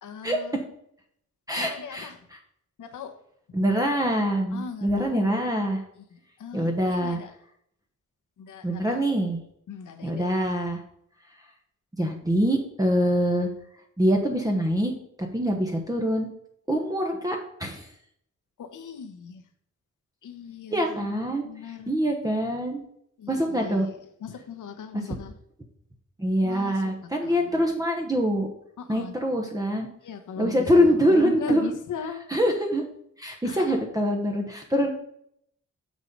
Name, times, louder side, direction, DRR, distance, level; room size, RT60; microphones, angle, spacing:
voice 1, 0.0-0.6 1.6-2.3 2.8-3.1 3.5-3.6 4.5-5.4 6.1-7.3 8.4-9.1 9.7-10.3 18.6-19.4 20.2-21.9 23.2-23.9 24.2-25.3 26.4-27.6 28.8-29.1 30.0-32.3 33.4-33.8, left 6 dB, 80° left, 7 dB, 1.1 m, -39 dB
voice 2, 1.5-2.4 3.5-5.8 6.5-7.2 8.6-9.4 10.0-10.8 12.0-13.5 14.0-14.9 15.2-16.3 16.7-17.9 20.7-22.8 23.3-23.9 24.9-25.0 26.2-28.5 28.9-29.9 30.4-31.7 32.3-32.8 33.2-34.9, equal, 10° right, 1 dB, 1.1 m, -24 dB
6.8 x 6.2 x 5.4 m, 0.71 s
wide cardioid pair, 115°, 30 cm